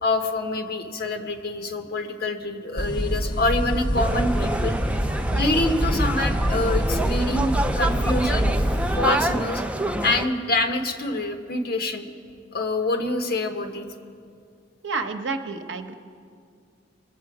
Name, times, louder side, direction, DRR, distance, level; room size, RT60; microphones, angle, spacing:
voice 1, 0.0-4.8 5.3-8.5 9.0-9.6 10.0-12.1 12.5-13.8, left 2 dB, 55° left, 5 dB, 1.1 m, -26 dB
sound 1, 2.8-9.0, equal, 25° left, 1.0 m, -25 dB
sound 2, 4.0-10.3, right 1 dB, 5° right, 0.4 m, -27 dB
voice 2, 14.8-15.9, right 4 dB, 80° right, 5 dB, 0.9 m, -29 dB
23.0 x 7.7 x 4.8 m, 2.2 s
head